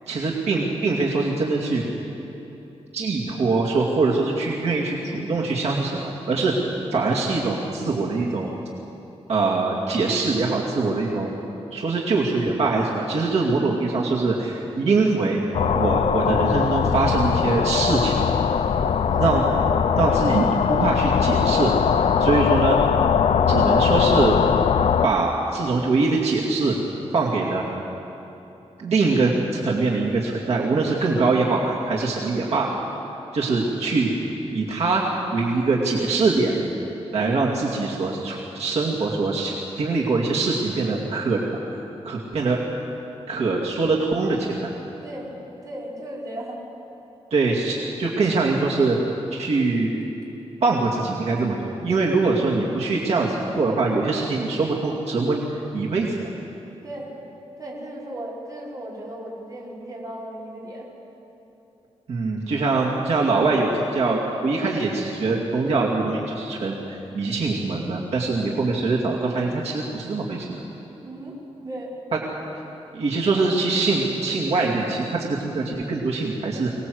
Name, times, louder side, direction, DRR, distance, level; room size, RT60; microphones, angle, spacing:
voice 1, 0.1-1.8 2.9-6.5 6.9-8.5 9.3-11.3 11.7-15.4 15.7-18.2 19.1-19.4 20.0-21.7 22.2-22.8 23.5-24.3 25.0-26.7 27.1-27.6 28.8-32.7 33.3-34.1 34.5-35.0 35.3-36.5 37.1-41.4 42.0-42.6 43.3-44.7 47.3-49.0 49.3-49.9 50.6-51.6 51.8-56.2 62.1-70.6 72.9-76.7, right 3 dB, 75° right, -3 dB, 2.5 m, -23 dB
sound 1, 15.5-25.1, left 7 dB, 70° left, 0.6 m, -20 dB
voice 2, 45.6-46.6 56.8-57.1 57.6-60.9 68.4-68.6 71.0-71.3 71.6-72.0, right 1 dB, 35° right, -5 dB, 5.2 m, -36 dB
24.0 x 19.5 x 7.9 m, 3.0 s
wide cardioid pair, 145°, 11 cm